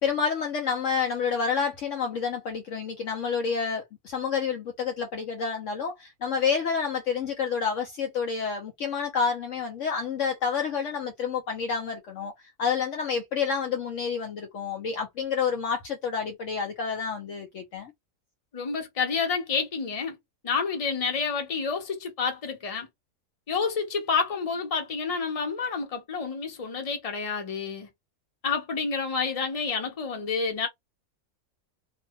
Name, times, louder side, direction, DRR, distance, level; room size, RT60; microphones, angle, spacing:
voice 1, 0.0-12.3 12.6-17.9, left 6 dB, 65° left, 0.9 m, -29 dB
voice 2, 18.5-20.2 20.4-22.9 23.5-27.9 28.4-30.7, left 5 dB, 30° left, 0.8 m, -29 dB
2.6 x 2.4 x 3.1 m
omnidirectional pair, 1.5 m